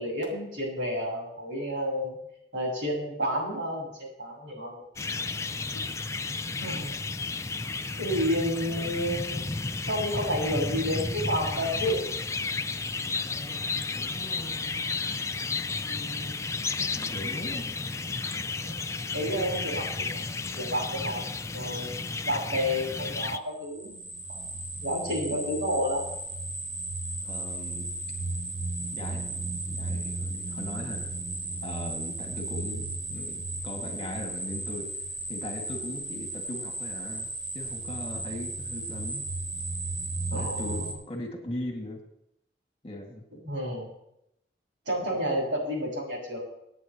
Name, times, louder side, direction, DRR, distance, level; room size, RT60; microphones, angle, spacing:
voice 1, 0.0-2.2 2.5-4.8 6.6-7.0 8.0-12.0 18.6-18.8 19.1-20.2 20.5-21.2 21.5-22.0 22.3-24.0 24.3-24.4 24.8-26.1 40.3-40.9 43.4-43.9 44.8-46.4, equal, 85° right, -3 dB, 6.6 m, -30 dB
sound 1, 5.0-23.4, left 3 dB, 15° left, 0.4 m, -32 dB
voice 2, 6.4-6.8 13.2-14.8 15.8-17.7 27.2-27.9 28.9-31.1 31.6-34.9 35.3-37.3 37.5-39.3 40.3-42.0 42.8-43.2, left 1 dB, 30° left, 1 dB, 2.4 m, -39 dB
sound 2, 23.6-40.9, right 2 dB, 65° right, 4.7 m, -35 dB
25.5 x 9.5 x 3.2 m, 0.80 s
head